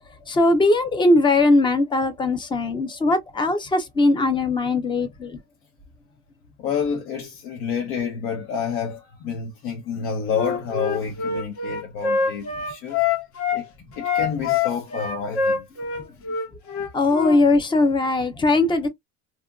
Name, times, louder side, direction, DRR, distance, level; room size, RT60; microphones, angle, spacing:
voice 1, 0.3-5.4 16.9-18.9, left 2 dB, 15° left, 0.5 m, -20 dB
voice 2, 6.6-13.0 13.5-13.7 13.9-15.6, left 6 dB, 80° left, 0.9 m, -29 dB
Wind instrument woodwind instrument, 10.3-13.6 14.0-17.4, left 5 dB, 55° left, 1.0 m, -25 dB
2.8 x 2.4 x 2.2 m
cardioid pair, 150°, 33 cm